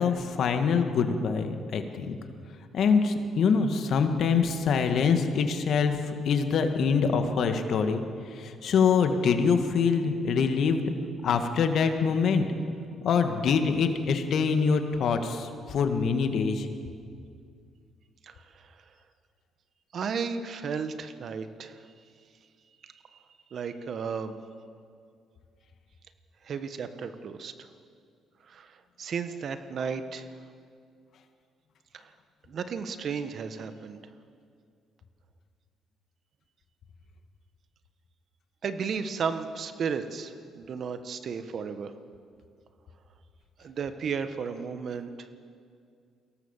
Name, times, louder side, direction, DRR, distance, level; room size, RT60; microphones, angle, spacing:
voice 1, 0.0-2.2 2.7-6.0 6.3-8.0 8.3-10.8 11.2-12.6 13.0-16.7, left 5 dB, 65° left, 6 dB, 1.9 m, -25 dB
voice 2, 18.2-18.8 19.9-21.9 22.8-23.2 23.5-24.3 26.4-27.7 28.5-30.3 31.9-32.1 32.5-34.0 38.6-41.9 43.6-45.3, right 6 dB, 60° right, 10 dB, 1.4 m, -34 dB
22.5 x 17.0 x 7.4 m, 2.3 s
supercardioid pair, 65°, 0 cm